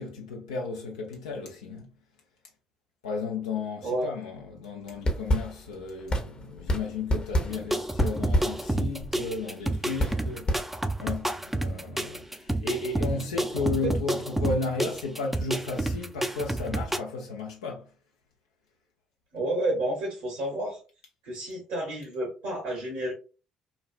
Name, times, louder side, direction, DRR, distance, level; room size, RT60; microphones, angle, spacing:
voice 1, 0.0-1.9 3.0-10.6 11.0-17.8, left 3 dB, 80° left, 0.5 m, -34 dB
sound 1, 4.9-11.2, equal, 35° left, 0.8 m, -30 dB
sound 2, 7.5-17.0, right 1 dB, 5° right, 0.4 m, -30 dB
voice 2, 19.3-20.8 21.2-23.1, right 1 dB, 65° right, 1.0 m, -30 dB
3.1 x 2.3 x 2.4 m
figure-of-eight pair, 45°, 3 cm